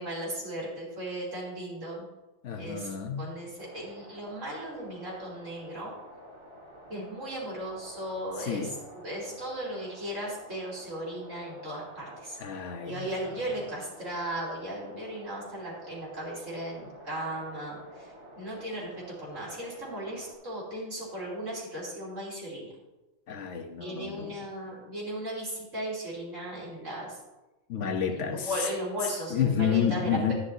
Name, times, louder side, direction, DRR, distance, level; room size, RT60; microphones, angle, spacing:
voice 1, 0.0-2.1 2.6-5.9 6.9-8.7 9.0-12.4 12.8-22.7 23.8-27.2 28.1-30.3, right 1 dB, 90° right, -6 dB, 3.6 m, -36 dB
voice 2, 2.4-3.3 8.4-8.8 12.4-13.1 23.3-24.3 27.7-28.5 29.3-30.3, left 8 dB, 75° left, 6 dB, 1.2 m, -30 dB
sound 1, 3.6-20.3, equal, 25° right, 1.2 m, -50 dB
11.5 x 9.7 x 2.8 m, 1.1 s
omnidirectional pair, 1.3 m